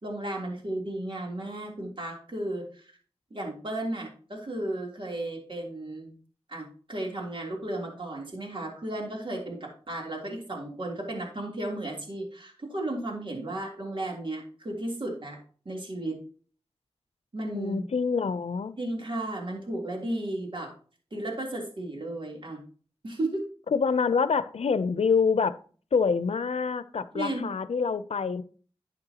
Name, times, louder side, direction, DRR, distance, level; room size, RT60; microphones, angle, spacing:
voice 1, 0.0-2.9 3.3-6.1 6.5-15.4 15.7-16.2 17.3-17.9 18.8-20.7 21.1-22.6 23.0-23.4 27.1-27.5, right 1 dB, 55° right, 0 dB, 3.4 m, -34 dB
voice 2, 17.5-18.7 23.7-25.5 25.9-28.4, left 5 dB, 90° left, 14 dB, 0.6 m, -26 dB
11.5 x 8.6 x 3.0 m, 0.41 s
wide cardioid pair, 55°, 10 cm